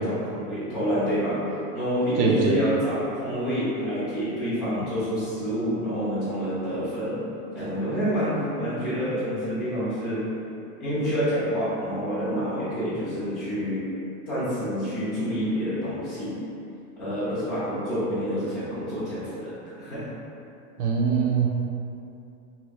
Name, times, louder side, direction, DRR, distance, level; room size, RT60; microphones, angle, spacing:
voice 1, 0.0-7.2 7.5-10.3 10.8-13.9 14.3-16.4 17.0-20.1, equal, 5° left, -20 dB, 0.6 m, -28 dB
voice 2, 2.2-2.6 20.8-21.6, right 5 dB, 65° right, -1 dB, 0.5 m, -22 dB
3.1 x 2.6 x 2.3 m, 2.8 s
supercardioid pair, 150°, 47 cm